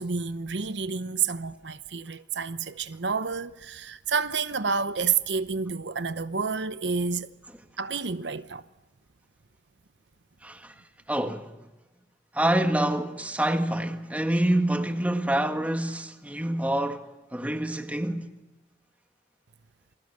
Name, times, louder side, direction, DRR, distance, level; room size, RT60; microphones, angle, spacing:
voice 1, 0.0-7.3 7.8-8.6, right 5 dB, 75° right, 0.9 m, -29 dB
voice 2, 10.4-10.7 11.1-11.6 12.3-18.3, right 1 dB, 10° right, 1.7 m, -27 dB
28.5 x 22.5 x 6.7 m
head